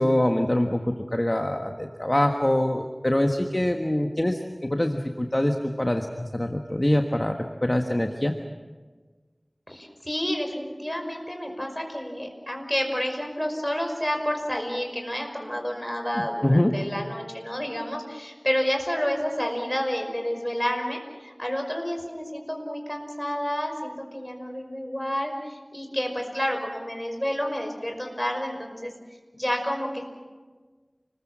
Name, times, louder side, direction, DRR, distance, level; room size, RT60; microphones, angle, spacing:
voice 1, 0.0-4.4 4.7-8.3 16.4-16.7, left 1 dB, 30° left, 3 dB, 1.5 m, -24 dB
voice 2, 9.7-28.9 29.3-30.0, equal, 15° left, 3 dB, 5.5 m, -30 dB
29.5 x 21.5 x 6.2 m, 1.4 s
wide cardioid pair, 40°, 0 cm